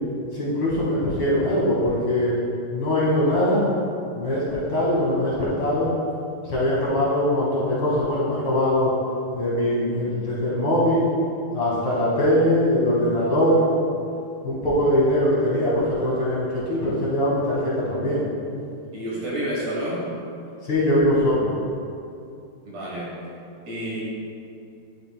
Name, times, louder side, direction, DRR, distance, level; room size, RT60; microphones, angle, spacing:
voice 1, 0.3-2.3 2.7-3.7 4.1-5.9 6.4-8.9 9.3-11.1 11.5-13.6 14.4-18.3 20.6-21.5, left 1 dB, 50° left, -8 dB, 1.7 m, -22 dB
voice 2, 18.9-20.1 22.7-23.1 23.7-24.0, right 1 dB, 60° right, -6 dB, 2.0 m, -29 dB
11.0 x 6.3 x 2.2 m, 2.6 s
omnidirectional pair, 4.2 m